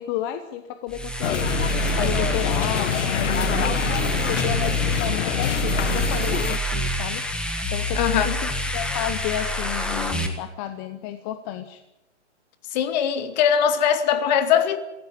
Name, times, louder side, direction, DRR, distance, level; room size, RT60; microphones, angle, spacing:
voice 1, 0.0-1.5 2.0-7.2 7.7-11.8, left 12 dB, 20° left, 10 dB, 0.7 m, -32 dB
sound 1, 0.9-10.3, right 1 dB, 5° left, 1.5 m, -27 dB
sound 2, 1.2-6.6, left 8 dB, 80° left, 1.0 m, -26 dB
voice 2, 7.9-8.4 12.7-14.8, left 8 dB, 35° left, 9 dB, 2.2 m, -21 dB
21.0 x 16.5 x 8.8 m, 0.99 s
hypercardioid pair, 150°, 36 cm